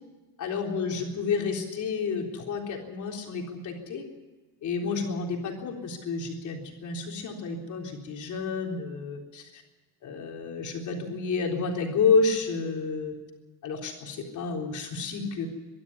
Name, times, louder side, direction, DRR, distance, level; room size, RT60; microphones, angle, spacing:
voice 1, 0.4-4.1 4.6-9.6 10.0-13.1 13.6-15.5, left 4 dB, 50° left, 1 dB, 3.8 m, -30 dB
23.5 x 12.0 x 9.7 m, 1.3 s
cardioid pair, 175°, 38 cm